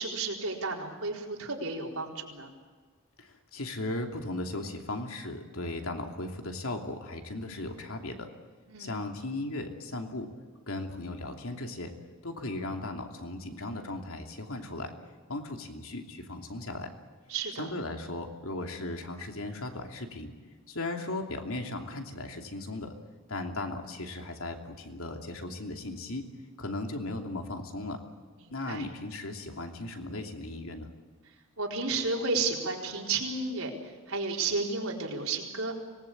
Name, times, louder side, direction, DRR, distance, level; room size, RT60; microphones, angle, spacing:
voice 1, 0.0-2.5 8.7-8.9 17.3-17.7 28.7-28.9 31.6-33.7 34.1-35.7, right 3 dB, 75° right, 0 dB, 4.3 m, -32 dB
voice 2, 3.2-8.3 8.8-10.3 10.7-11.9 12.2-14.9 15.3-16.9 17.6-20.3 20.7-22.9 23.3-26.3 26.6-28.0 28.5-30.9, left 2 dB, 70° left, 4 dB, 2.9 m, -37 dB
25.0 x 19.5 x 8.7 m, 1.5 s
head